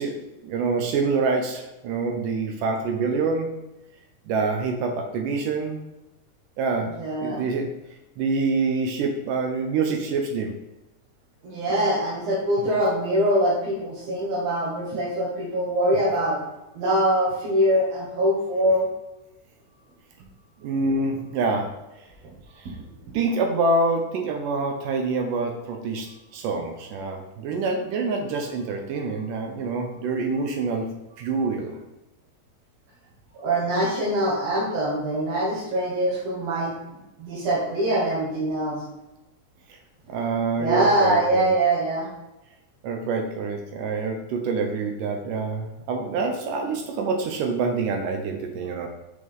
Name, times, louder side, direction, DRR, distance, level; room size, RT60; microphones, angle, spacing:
voice 1, 0.0-3.5 4.3-5.8 6.6-6.9 7.2-7.7 8.2-10.5 20.6-21.7 22.6-22.7 23.1-26.1 26.3-30.9 31.2-31.8 40.1-41.5 42.8-48.9, right 4 dB, 80° right, 3 dB, 2.3 m, -26 dB
voice 2, 6.8-7.4 11.4-16.4 16.7-18.9 20.8-20.9 22.8-22.9 33.3-36.8 37.2-38.8 40.1-40.3 40.6-42.1, right 1 dB, 55° right, -6 dB, 2.3 m, -23 dB
6.4 x 6.1 x 3.6 m, 0.98 s
omnidirectional pair, 3.8 m